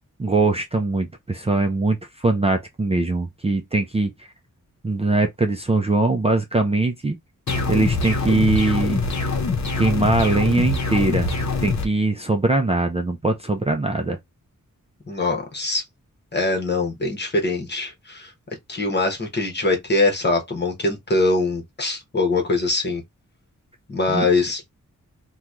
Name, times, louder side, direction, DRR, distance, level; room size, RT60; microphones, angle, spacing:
voice 1, 0.2-4.3 4.8-7.2 7.7-9.0 9.8-14.2 24.1-24.3, right 2 dB, 20° right, 0.4 m, -21 dB
sound 1, 7.5-11.9, left 4 dB, 60° left, 0.8 m, -24 dB
voice 2, 15.1-15.8 16.3-18.3 18.7-23.0 23.9-24.6, left 2 dB, 35° left, 1.1 m, -22 dB
2.9 x 2.3 x 3.6 m
wide cardioid pair, 140°, 31 cm